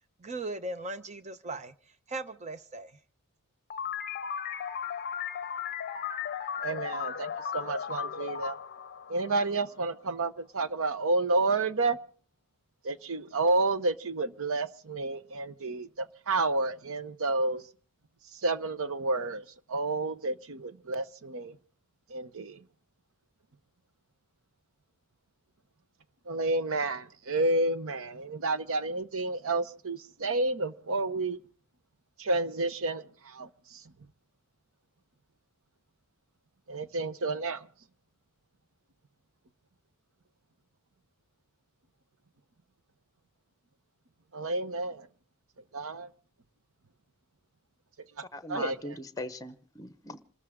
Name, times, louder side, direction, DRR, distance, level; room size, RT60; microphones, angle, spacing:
voice 1, 0.2-1.7 2.1-2.9, right 2 dB, 30° right, 0.9 m, -38 dB
sound 1, 3.7-9.9, left 7 dB, 45° left, 0.7 m, -36 dB
voice 2, 6.6-8.6 9.1-12.0 12.8-17.7 18.2-21.6 22.1-22.7 26.2-31.4 32.2-33.9 36.7-37.7 44.3-45.1 45.6-46.1 48.0-49.0, right 2 dB, 65° right, 0.9 m, -30 dB
voice 3, 48.3-50.2, left 1 dB, 15° left, 1.0 m, -40 dB
27.5 x 14.0 x 3.7 m
head